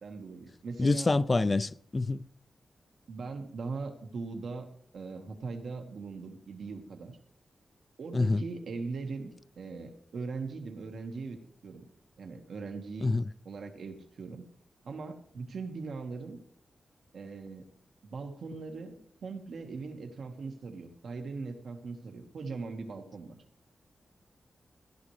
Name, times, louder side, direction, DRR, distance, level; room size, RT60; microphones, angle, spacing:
voice 1, 0.0-1.1 3.1-4.7 4.9-7.2 8.0-11.4 11.6-11.8 12.2-13.2 13.4-14.5 14.8-16.4 17.1-17.7 18.0-23.4, right 4 dB, 80° right, 1.5 m, -40 dB
voice 2, 0.8-2.2 8.1-8.4 13.0-13.2, left 3 dB, 30° left, 0.4 m, -26 dB
16.0 x 11.5 x 3.2 m
wide cardioid pair, 110°, 0 cm